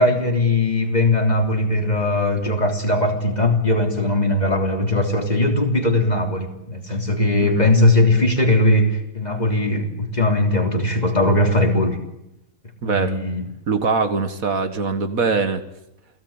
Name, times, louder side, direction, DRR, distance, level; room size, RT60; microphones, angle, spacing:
voice 1, 0.0-12.0 12.8-13.4, left 2 dB, 25° left, 2 dB, 3.5 m, -19 dB
voice 2, 12.8-13.2 13.7-15.6, right 4 dB, 65° right, 9 dB, 2.1 m, -22 dB
28.5 x 18.0 x 8.9 m, 0.86 s
omnidirectional pair, 1.6 m